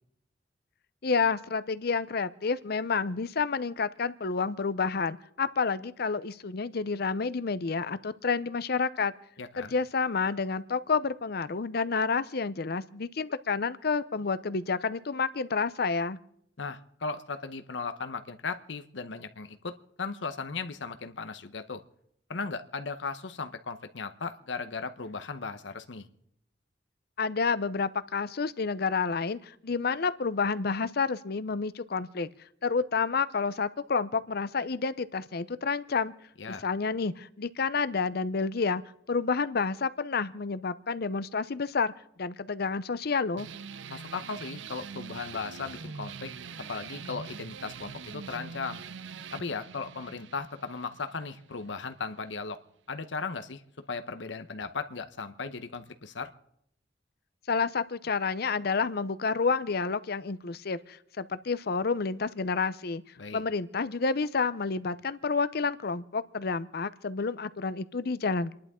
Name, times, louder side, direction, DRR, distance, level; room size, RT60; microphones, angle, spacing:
voice 1, 1.0-9.1 9.6-16.2 27.2-32.3 32.6-36.1 36.5-38.8 39.1-41.9 42.2-43.5 57.5-63.0 63.3-68.5, left 4 dB, 60° left, 15 dB, 0.7 m, -29 dB
voice 2, 9.4-9.7 16.6-21.8 22.3-26.1 36.4-36.6 43.9-46.3 46.7-48.8 49.3-52.6 52.9-53.6 53.9-56.3 63.2-63.4, left 4 dB, 85° left, 9 dB, 0.9 m, -37 dB
sound 1, 43.4-52.4, right 6 dB, 90° right, 0.6 m, -44 dB
29.0 x 11.5 x 3.7 m, 0.74 s
head